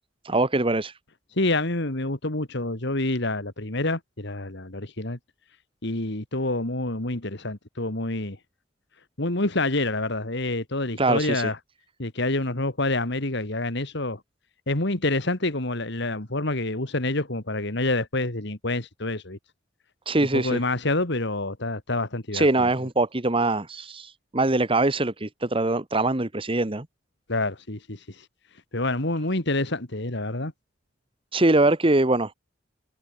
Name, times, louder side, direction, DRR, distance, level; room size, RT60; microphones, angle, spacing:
voice 1, 0.2-0.9 11.0-11.5 20.1-20.6 22.3-26.8 31.3-32.3, right 2 dB, 30° right, 1.4 m, -23 dB
voice 2, 1.4-5.2 5.8-8.4 9.2-11.6 12.0-14.2 14.7-19.4 20.3-22.7 27.3-28.3 28.7-30.5, left 2 dB, 60° left, 2.7 m, -27 dB
head